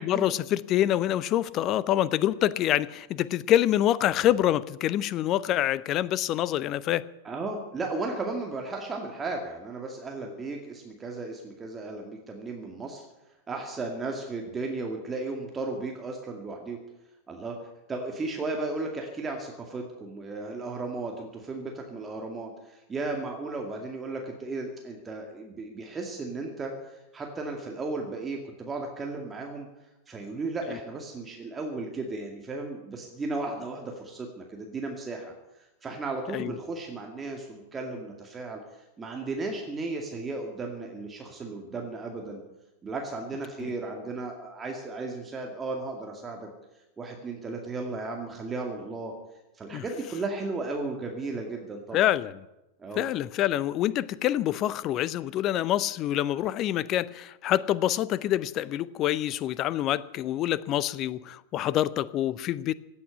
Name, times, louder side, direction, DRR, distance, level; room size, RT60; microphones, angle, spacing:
voice 1, 0.0-7.0 36.3-36.5 43.6-43.7 49.7-49.8 51.9-52.4 53.0-62.7, left 12 dB, 35° left, 20 dB, 0.6 m, -26 dB
voice 2, 7.2-13.0 13.5-16.8 17.3-17.6 17.9-29.7 30.1-35.3 35.8-38.6 39.0-42.4 42.8-46.5 47.0-49.1 49.5-52.0 52.8-53.0, right 3 dB, 15° right, 1 dB, 2.2 m, -35 dB
17.0 x 8.6 x 9.8 m, 0.97 s
figure-of-eight pair, 90°, 0 cm